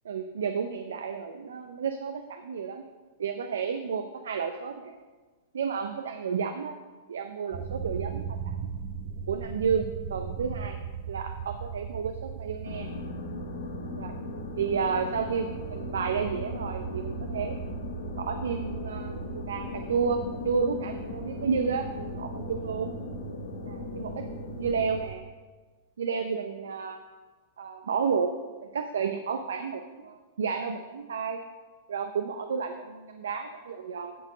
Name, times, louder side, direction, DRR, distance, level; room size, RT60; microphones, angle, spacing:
voice 1, 0.0-2.8 3.2-4.9 5.5-6.8 7.1-8.5 9.3-10.8 11.1-12.9 14.0-14.1 14.6-17.6 18.2-19.2 19.5-22.9 23.7-24.3 24.6-25.2 26.0-27.0 27.6-28.3 28.6-31.4 31.9-34.2, right 6 dB, 85° right, 7 dB, 0.5 m, -31 dB
sound 1, 7.5-25.1, right 7 dB, 50° right, 0.8 m, -39 dB
sound 2, 12.6-25.0, left 5 dB, 85° left, 1.0 m, -39 dB
9.7 x 4.5 x 4.9 m, 1.4 s
hypercardioid pair, 125°, 0 cm